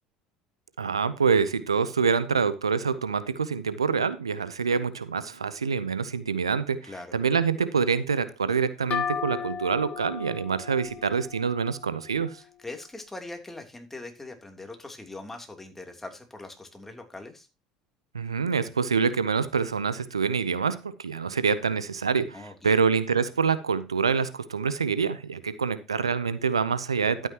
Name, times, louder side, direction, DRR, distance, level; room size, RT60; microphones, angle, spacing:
voice 1, 0.8-12.4 18.1-27.3, right 5 dB, 90° right, 15 dB, 0.7 m, -26 dB
voice 2, 6.8-7.2 12.4-17.5 22.3-22.8, left 2 dB, 10° left, 4 dB, 3.1 m, -41 dB
Large Pottery Bowl, 8.9-12.5, left 7 dB, 45° left, 1.6 m, -35 dB
12.0 x 9.1 x 2.9 m, 0.28 s
hypercardioid pair, 65°, 3 cm